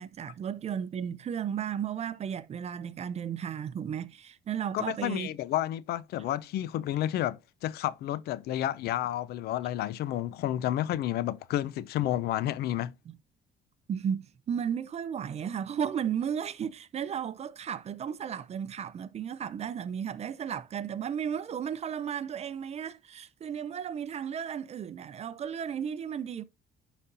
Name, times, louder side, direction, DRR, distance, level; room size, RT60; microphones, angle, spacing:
voice 1, 0.0-5.3 13.9-26.4, right 8 dB, 40° right, 0.5 m, -34 dB
voice 2, 4.7-12.9, left 13 dB, 70° left, 0.5 m, -31 dB
11.0 x 4.1 x 2.5 m
cardioid pair, 110°, 17 cm